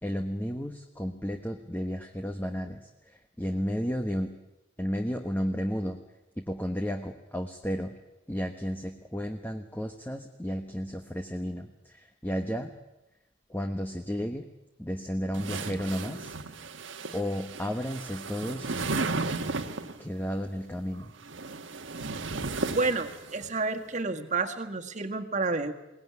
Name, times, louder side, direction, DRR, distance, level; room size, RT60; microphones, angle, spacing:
voice 1, 0.0-4.3 4.8-6.0 6.4-8.0 8.3-12.7 13.5-14.5 14.8-16.3 17.1-18.8 20.0-21.1, equal, 10° left, 5 dB, 1.2 m, -33 dB
sound 1, 15.3-20.0 21.0-23.5, right 3 dB, 75° right, 1.4 m, -34 dB
voice 2, 22.6-25.7, right 3 dB, 40° right, 6 dB, 1.8 m, -30 dB
22.5 x 18.5 x 9.6 m, 0.98 s
head